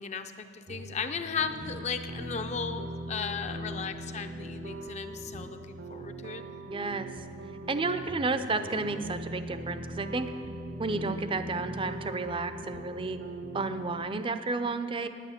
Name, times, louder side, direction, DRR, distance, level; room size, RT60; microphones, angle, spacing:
voice 1, 0.0-6.4, left 6 dB, 40° left, 8 dB, 0.5 m, -36 dB
sound 1, 0.7-14.1, right 1 dB, 65° right, 0.7 m, -40 dB
voice 2, 6.7-7.1 7.7-10.3 10.8-13.2 13.5-15.1, right 3 dB, 30° right, 10 dB, 0.5 m, -31 dB
9.3 x 9.2 x 7.2 m, 2.7 s
head